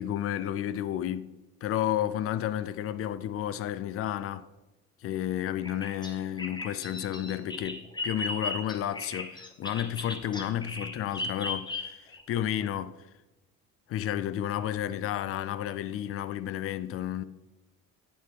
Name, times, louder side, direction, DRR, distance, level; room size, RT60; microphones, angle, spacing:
voice 1, 0.0-1.3 1.6-4.5 5.0-13.0 13.9-17.2, left 11 dB, 30° left, 0.4 m, -32 dB
Bird vocalization bird call bird song, 5.6-12.2, left 2 dB, 10° left, 1.2 m, -36 dB
8.9 x 4.5 x 5.3 m
figure-of-eight pair, 45°, 48 cm